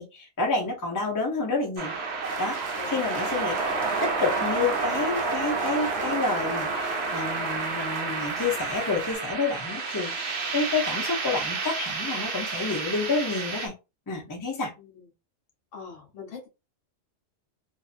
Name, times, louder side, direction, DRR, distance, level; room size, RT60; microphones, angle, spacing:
voice 1, 0.0-1.9 2.4-2.6 2.9-3.5 3.8-13.7 14.1-14.7, left 3 dB, 20° left, 0.5 m, -29 dB
sound 1, 1.8-13.7, right 4 dB, 60° right, 0.9 m, -30 dB
sound 2, 2.2-9.2, right 5 dB, 90° right, 0.3 m, -38 dB
voice 2, 2.8-3.1 14.8-15.1 15.7-16.5, left 6 dB, 65° left, 1.3 m, -43 dB
2.7 x 2.4 x 2.5 m
omnidirectional pair, 1.3 m